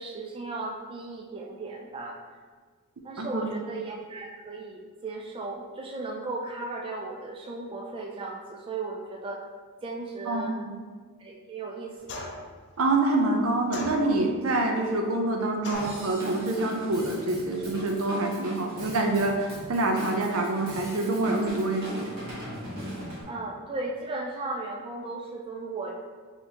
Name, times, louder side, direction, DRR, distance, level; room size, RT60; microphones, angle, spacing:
voice 1, 0.0-2.2 3.0-9.4 9.8-10.6 11.2-12.4 23.3-25.9, right 3 dB, 25° right, -1 dB, 0.3 m, -36 dB
voice 2, 3.2-3.5 10.3-10.9 12.8-22.1, right 2 dB, 70° right, 2 dB, 0.6 m, -26 dB
sound 1, 12.1-12.6 13.7-14.4 15.6-16.1, left 3 dB, 55° left, 0.5 m, -38 dB
Drum kit / Drum, 15.7-23.2, equal, 50° right, 1.4 m, -39 dB
4.4 x 3.5 x 2.8 m, 1.5 s
head